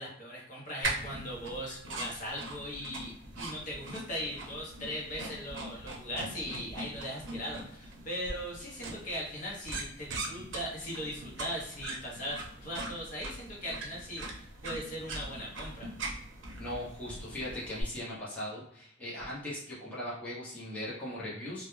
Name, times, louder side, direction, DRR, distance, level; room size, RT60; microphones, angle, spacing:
voice 1, 0.0-15.9, equal, 40° left, -4 dB, 0.7 m, -39 dB
sound 1, 0.8-17.8, right 2 dB, 65° right, 0.6 m, -41 dB
voice 2, 16.6-21.7, left 1 dB, 5° left, -8 dB, 0.7 m, -39 dB
2.2 x 2.1 x 3.0 m, 0.71 s
head